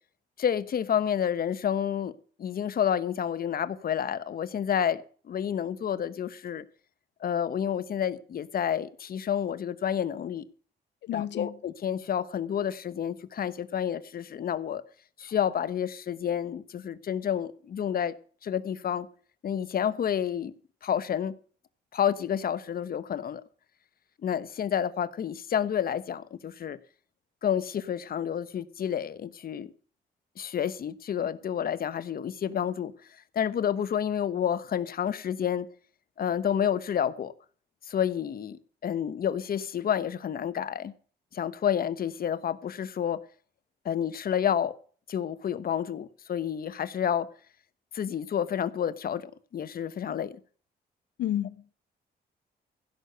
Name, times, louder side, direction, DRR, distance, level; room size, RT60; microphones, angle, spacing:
voice 1, 0.4-6.6 7.2-10.5 11.1-14.8 15.2-18.1 18.4-19.1 19.4-20.5 20.8-21.4 21.9-23.4 24.2-26.8 27.4-29.7 30.4-32.9 33.3-35.7 36.2-37.3 37.9-40.9 41.3-43.2 43.8-44.7 45.1-47.3 47.9-50.4, left 9 dB, 55° left, 1.0 m, -29 dB
voice 2, 11.0-11.5 51.2-51.7, left 12 dB, 85° left, 0.6 m, -31 dB
16.0 x 6.6 x 6.7 m
cardioid pair, 100°, 18 cm